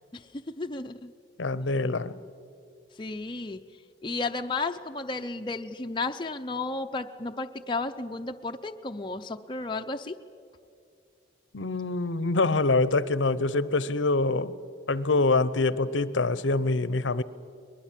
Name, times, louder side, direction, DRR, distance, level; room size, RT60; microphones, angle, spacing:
voice 1, 0.1-1.1 3.0-3.6 4.0-10.2, left 3 dB, 25° left, 5 dB, 0.6 m, -33 dB
voice 2, 1.4-2.1 11.5-14.6 14.9-17.2, left 3 dB, 85° left, 17 dB, 0.8 m, -25 dB
22.0 x 21.0 x 7.5 m, 2.4 s
head